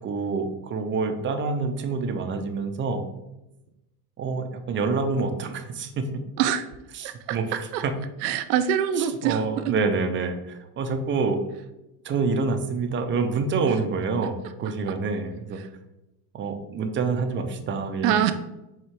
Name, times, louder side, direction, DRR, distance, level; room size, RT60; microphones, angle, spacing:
voice 1, 0.0-3.0 4.2-6.1 6.9-7.7 9.0-11.4 12.0-15.6 16.3-18.1, right 4 dB, 25° right, 6 dB, 0.5 m, -27 dB
voice 2, 7.0-7.8 8.2-9.6 14.9-15.0 15.6-15.7 18.0-18.3, right 9 dB, 85° right, 9 dB, 0.5 m, -25 dB
4.3 x 2.4 x 4.6 m, 0.94 s
supercardioid pair, 100°, 49 cm